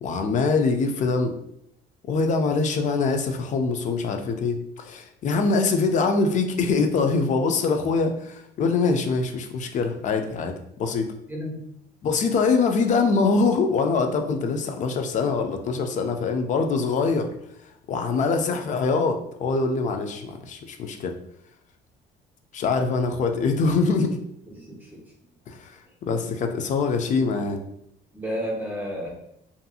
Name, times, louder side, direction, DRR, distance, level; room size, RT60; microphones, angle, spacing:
voice 1, 0.0-1.4 2.1-11.1 12.0-17.3 17.9-21.1 22.5-24.2 25.5-27.6, left 4 dB, 45° left, 5 dB, 0.4 m, -24 dB
voice 2, 28.1-29.1, equal, 10° right, -3 dB, 0.8 m, -30 dB
2.6 x 2.6 x 2.3 m, 0.76 s
cardioid pair, 110°, 17 cm